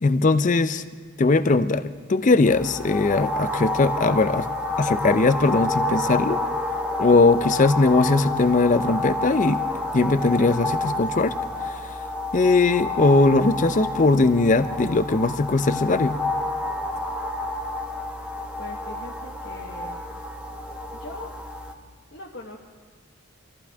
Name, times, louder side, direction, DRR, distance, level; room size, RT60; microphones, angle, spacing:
voice 1, 0.0-0.8 1.2-4.5 4.8-6.4 7.0-9.6 9.9-11.3 11.6-11.9 12.3-16.2, left 3 dB, 35° left, 12 dB, 0.4 m, -20 dB
sound 1, 2.4-21.7, left 2 dB, 5° right, 1.0 m, -29 dB
voice 2, 18.6-20.0 21.0-21.3 22.1-22.6, left 2 dB, 55° left, -4 dB, 1.3 m, -40 dB
25.0 x 14.5 x 3.5 m, 1.5 s
head